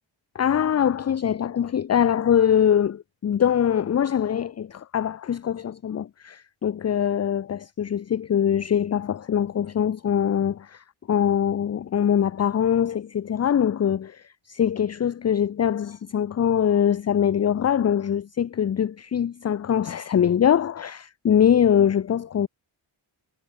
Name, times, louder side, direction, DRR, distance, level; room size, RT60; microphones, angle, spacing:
voice 1, 0.3-22.5, left 9 dB, 35° left, 0.4 m, -23 dB
cardioid pair, 65°, 50 cm